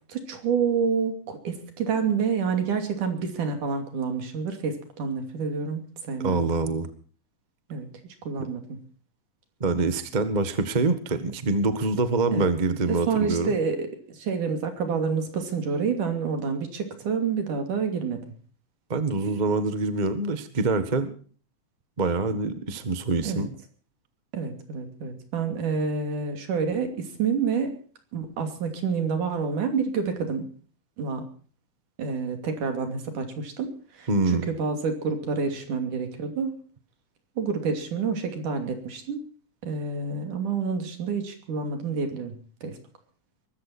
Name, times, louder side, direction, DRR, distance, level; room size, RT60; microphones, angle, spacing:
voice 1, 0.1-6.5 7.7-7.9 8.2-8.8 12.3-12.5 12.9-18.2 23.3-23.5 24.3-27.7 28.1-30.5 31.0-31.2 32.0-36.6 37.4-39.2 39.6-42.8, right 5 dB, 75° right, 6 dB, 4.3 m, -28 dB
voice 2, 6.2-6.9 8.4-8.5 9.6-13.5 18.9-21.1 22.0-23.5 34.1-34.5, right 3 dB, 25° right, 10 dB, 0.9 m, -25 dB
22.5 x 13.5 x 4.4 m, 0.43 s
omnidirectional pair, 3.6 m